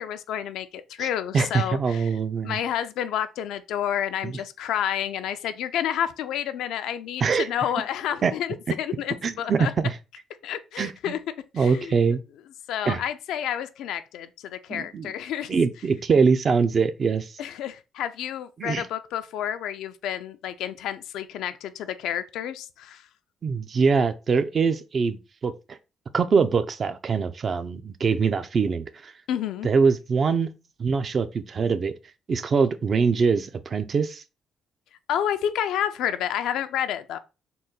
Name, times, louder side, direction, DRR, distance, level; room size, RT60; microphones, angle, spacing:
voice 1, 0.0-2.1 2.4-9.7 10.4-11.2 11.6-12.0 12.7-15.6 17.4-23.0 29.3-29.7 35.1-37.2, left 10 dB, 85° left, 0.4 m, -30 dB
voice 2, 1.3-2.6 4.2-4.4 7.2-7.5 8.2-8.3 9.2-9.9 10.8-11.1 11.6-12.2 12.9-13.0 14.7-15.1 15.5-17.3 18.6-18.9 23.4-25.8 26.1-29.1 29.6-30.5 30.8-31.9 32.3-34.2, right 5 dB, 45° right, 0.4 m, -23 dB
3.8 x 2.1 x 3.8 m
cardioid pair, 90°, 0 cm